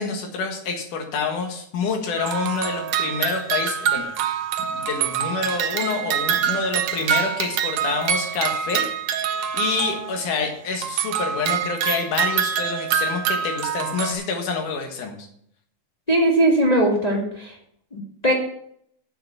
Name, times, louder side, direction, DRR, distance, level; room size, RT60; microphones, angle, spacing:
voice 1, 0.0-4.0 4.6-8.9 9.2-15.3, left 4 dB, 75° left, 3 dB, 3.0 m, -27 dB
sound 1, 2.2-10.4 10.7-14.1, right 9 dB, 85° right, 1.3 m, -25 dB
voice 2, 16.1-17.5 17.9-18.3, right 1 dB, 25° left, -2 dB, 0.9 m, -19 dB
7.9 x 6.6 x 7.1 m, 0.69 s
omnidirectional pair, 3.7 m